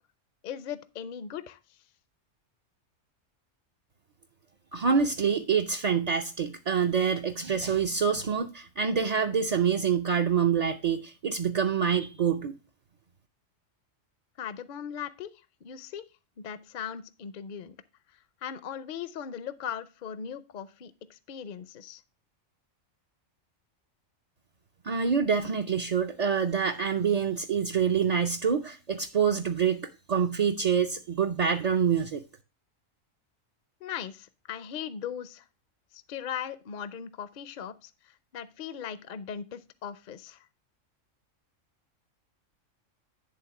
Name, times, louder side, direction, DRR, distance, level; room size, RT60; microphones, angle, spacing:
voice 1, 0.4-1.6 14.4-15.3 15.6-16.0 16.4-17.8 18.4-22.0 33.8-35.4 35.9-37.9 38.3-40.4, left 8 dB, 55° left, 0.6 m, -38 dB
voice 2, 4.7-12.5 24.8-32.2, right 7 dB, 50° right, 0.5 m, -26 dB
10.5 x 3.6 x 5.8 m
omnidirectional pair, 1.3 m